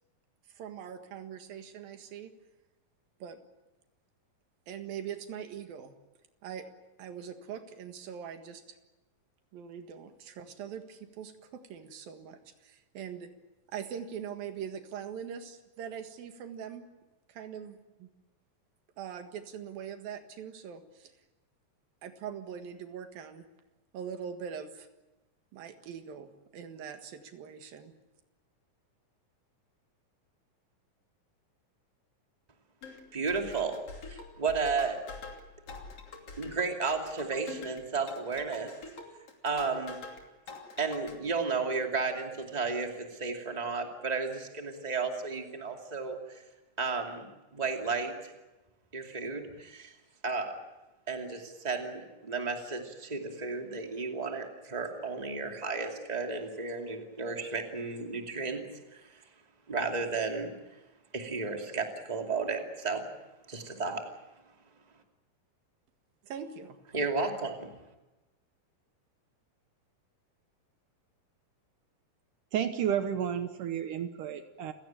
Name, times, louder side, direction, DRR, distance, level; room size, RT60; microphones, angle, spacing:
voice 1, 0.6-2.3 3.2-3.4 4.7-6.0 6.4-6.7 7.0-8.8 9.5-13.3 13.7-16.8 17.3-18.1 19.0-21.1 22.0-23.4 23.9-24.9 25.5-27.9 66.2-66.8, right 8 dB, 90° right, 7 dB, 3.6 m, -42 dB
sound 1, 32.8-40.2 40.5-41.1, left 4 dB, 45° left, 3.7 m, -46 dB
voice 2, 33.1-33.8 34.1-35.0 36.4-38.7 39.4-40.0 40.8-46.4 46.8-48.3 48.9-49.9 50.2-50.6 51.1-58.6 58.9-59.2 59.7-60.5 61.1-63.1 63.5-64.0 66.9-67.7, right 4 dB, 15° right, 3 dB, 2.2 m, -33 dB
voice 3, 72.5-74.7, right 9 dB, 70° right, 9 dB, 2.5 m, -31 dB
28.5 x 17.0 x 8.9 m, 1.1 s
omnidirectional pair, 4.0 m